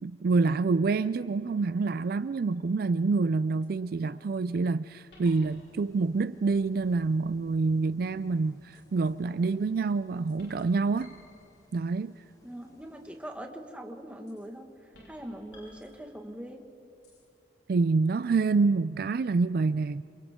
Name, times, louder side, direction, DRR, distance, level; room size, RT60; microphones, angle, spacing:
voice 1, 0.0-11.1 11.7-12.1 17.7-20.0, right 4 dB, 55° right, 0.4 m, -27 dB
sound 1, 2.5-2.9 3.6-3.7 5.1-6.0 8.7-9.2 10.3-11.9 14.3-14.6 14.9-16.5 17.0-17.3 18.2-18.3, left 2 dB, 70° left, 4.4 m, -57 dB
sound 2, 5.5-13.3, equal, 20° left, 1.7 m, -61 dB
voice 2, 12.4-16.6, right 1 dB, 5° right, 1.7 m, -42 dB
29.0 x 27.0 x 3.7 m
head